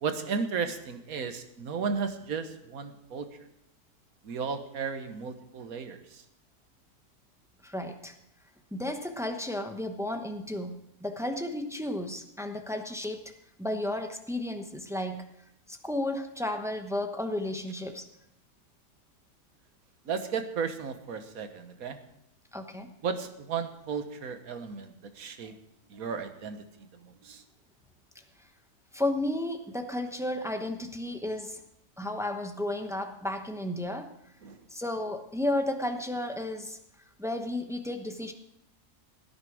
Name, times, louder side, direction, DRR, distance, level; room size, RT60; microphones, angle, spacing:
voice 1, 0.0-3.4 4.2-6.2 20.0-22.0 23.0-25.6 25.9-27.4 34.4-34.6, right 5 dB, 65° right, 9 dB, 1.6 m, -34 dB
voice 2, 7.6-8.1 8.7-10.7 11.0-13.3 13.6-15.3 15.7-18.0 22.5-22.9 28.9-31.6 32.0-34.1 34.7-36.8 37.2-38.3, left 1 dB, ahead, 5 dB, 0.7 m, -33 dB
17.0 x 9.7 x 4.8 m, 0.83 s
omnidirectional pair, 1.7 m